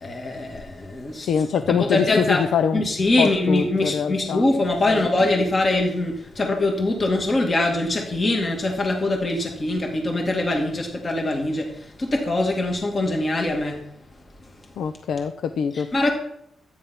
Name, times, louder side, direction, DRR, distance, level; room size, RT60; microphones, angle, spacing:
voice 1, 0.0-1.3 1.7-2.4 2.7-11.7 12.0-13.8 15.7-16.1, left 2 dB, 30° left, 1 dB, 2.2 m, -23 dB
voice 2, 1.2-2.8 3.2-4.5 4.9-5.0 14.8-15.9, left 7 dB, 80° left, 9 dB, 0.7 m, -24 dB
12.5 x 9.6 x 5.9 m, 0.75 s
wide cardioid pair, 140°, 0 cm